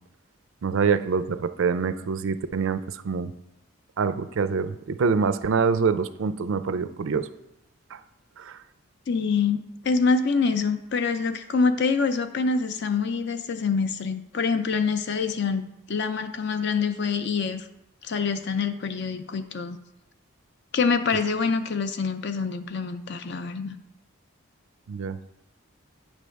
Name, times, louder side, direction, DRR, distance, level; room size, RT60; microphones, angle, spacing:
voice 1, 0.6-3.3 4.0-7.3 7.9-8.0 8.4-8.6 24.9-25.2, right 5 dB, 65° right, 12 dB, 0.4 m, -25 dB
voice 2, 9.1-17.7 18.0-19.8 20.7-23.8, left 5 dB, 50° left, 10 dB, 0.5 m, -25 dB
9.1 x 3.4 x 6.3 m, 0.86 s
head